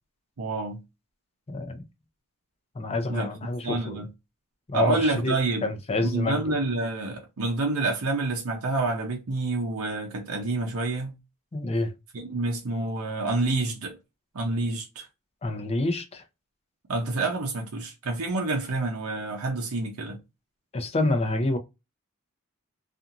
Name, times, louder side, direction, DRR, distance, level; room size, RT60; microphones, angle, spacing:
voice 1, 0.4-0.8 3.1-3.3 3.6-4.1 4.7-5.7 6.0-11.1 12.1-14.0 14.3-15.1 16.9-20.2, right 3 dB, 70° right, 0.6 m, -28 dB
voice 2, 1.5-1.8 2.8-4.0 4.7-5.3 5.6-6.5 11.5-11.9 15.4-16.2 20.7-21.6, left 2 dB, 30° left, 0.5 m, -27 dB
2.8 x 2.4 x 2.5 m
head